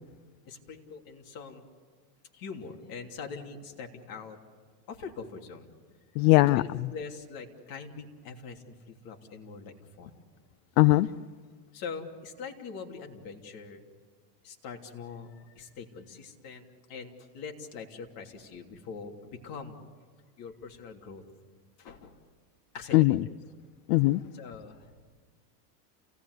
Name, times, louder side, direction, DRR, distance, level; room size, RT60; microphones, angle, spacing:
voice 1, 0.4-1.6 2.3-4.4 4.9-5.7 6.5-10.1 11.7-13.8 14.4-16.6 16.9-19.8 20.4-21.2 21.8-22.2 22.7-23.2 24.3-24.9, left 5 dB, 45° left, 2 dB, 3.1 m, -43 dB
voice 2, 6.2-6.6 10.8-11.1 22.9-23.2 23.9-24.2, left 19 dB, 65° left, 17 dB, 0.6 m, -20 dB
29.0 x 18.0 x 8.2 m, 1.5 s
supercardioid pair, 140°, 50 cm